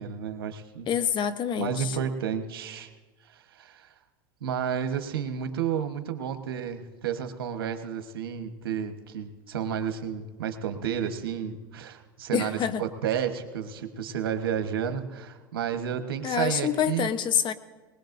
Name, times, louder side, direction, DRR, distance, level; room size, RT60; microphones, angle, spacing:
voice 1, 0.0-0.9 1.6-2.9 3.6-3.9 4.4-17.1, right 8 dB, 90° right, 7 dB, 1.2 m, -31 dB
voice 2, 0.9-2.0 12.3-12.8 16.2-17.5, left 8 dB, 40° left, 11 dB, 0.9 m, -26 dB
20.5 x 20.0 x 2.6 m, 1.3 s
hypercardioid pair, 100°, 12 cm